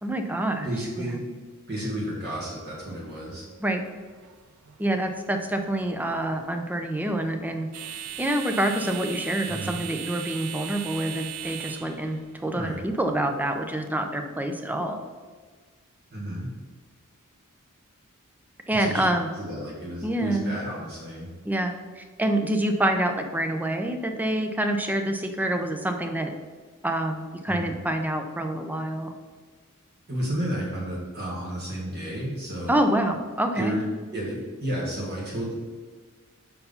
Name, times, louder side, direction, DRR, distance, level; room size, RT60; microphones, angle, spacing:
voice 1, 0.0-0.7 1.0-1.2 3.6-3.8 4.8-7.7 8.2-15.0 18.7-19.3 20.0-20.5 21.4-26.3 26.8-29.1 32.7-33.8, right 1 dB, 10° right, 5 dB, 0.5 m, -27 dB
voice 2, 0.6-1.3 1.7-3.4 9.4-9.7 12.5-12.8 16.1-16.5 18.8-21.3 27.5-27.7 30.1-32.9 33.5-33.8 34.1-35.5, equal, 50° right, -4 dB, 1.7 m, -32 dB
sound 1, 2.6-13.9, right 10 dB, 85° right, 0.5 m, -40 dB
5.4 x 4.6 x 5.5 m, 1.5 s
head